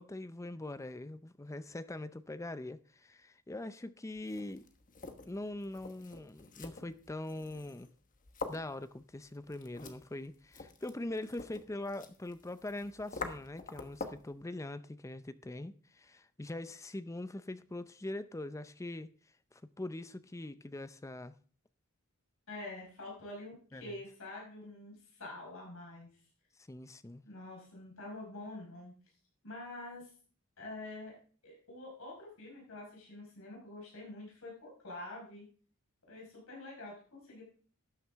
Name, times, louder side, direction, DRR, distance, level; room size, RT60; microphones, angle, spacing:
voice 1, 0.0-4.7 5.2-7.9 8.5-19.1 19.5-21.3 23.7-23.9 26.7-27.2, left 1 dB, 15° left, 0.5 m, -42 dB
sound 1, 4.1-14.3, left 4 dB, 40° left, 1.2 m, -47 dB
voice 2, 22.5-26.1 27.2-28.9 29.4-30.1 30.6-31.1 31.4-35.4 36.1-37.4, left 2 dB, 70° left, 5.1 m, -46 dB
12.5 x 9.2 x 3.5 m
head